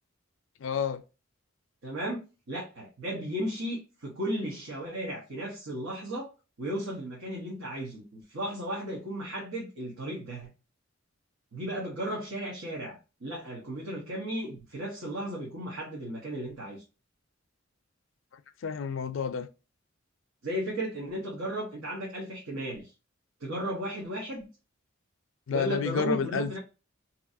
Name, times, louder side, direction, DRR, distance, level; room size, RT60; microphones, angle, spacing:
voice 1, 0.6-1.0 18.6-19.5 25.5-26.6, left 6 dB, 65° left, 0.4 m, -30 dB
voice 2, 1.8-2.2 2.5-6.3 6.6-10.5 11.5-16.8 20.4-22.9 23.4-24.4 25.5-26.6, right 1 dB, 85° right, 1.0 m, -35 dB
3.0 x 2.6 x 2.6 m
head